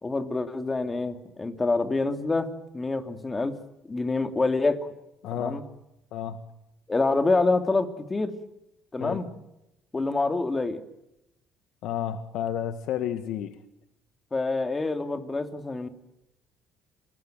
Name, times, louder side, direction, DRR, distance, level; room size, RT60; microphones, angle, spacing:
voice 1, 0.0-3.6 3.8-4.9 5.3-5.6 6.9-8.4 8.9-9.3 9.9-10.8 14.3-15.9, left 3 dB, 20° left, 8 dB, 3.0 m, -26 dB
voice 2, 5.2-5.6 6.1-6.4 9.0-9.2 11.8-13.6, left 10 dB, 75° left, 10 dB, 1.7 m, -31 dB
27.5 x 20.5 x 9.2 m, 0.89 s
cardioid pair, 100°, 0 cm